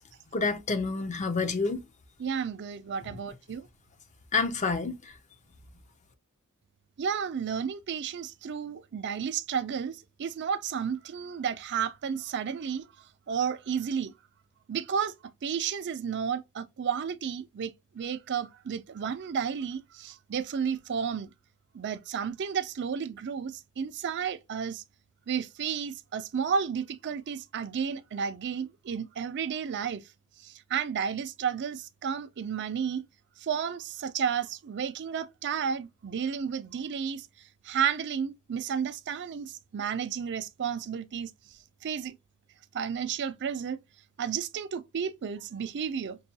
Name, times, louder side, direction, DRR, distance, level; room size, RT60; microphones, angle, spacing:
voice 1, 0.3-1.8 4.3-5.0, left 4 dB, 30° left, 0.5 m, -28 dB
voice 2, 2.2-3.7 7.0-12.8 13.3-14.1 14.7-15.1 15.4-21.3 21.7-24.8 25.3-30.0 30.4-33.0 33.4-37.3 37.6-41.3 41.8-42.1 42.7-43.8 44.2-46.2, right 7 dB, 50° right, 0.4 m, -32 dB
5.3 x 2.2 x 2.7 m
head